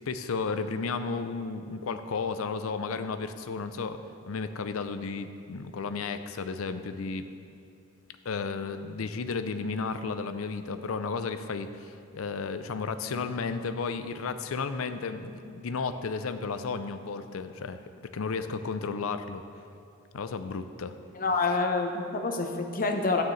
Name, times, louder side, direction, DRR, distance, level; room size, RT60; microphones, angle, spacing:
voice 1, 0.1-4.0 4.3-7.3 8.2-17.8 18.1-19.4 20.1-21.0 21.5-21.6, left 4 dB, 80° left, 10 dB, 0.5 m, -33 dB
voice 2, 21.1-23.2, left 3 dB, 45° left, 4 dB, 0.8 m, -27 dB
11.5 x 9.2 x 3.2 m, 2.5 s
head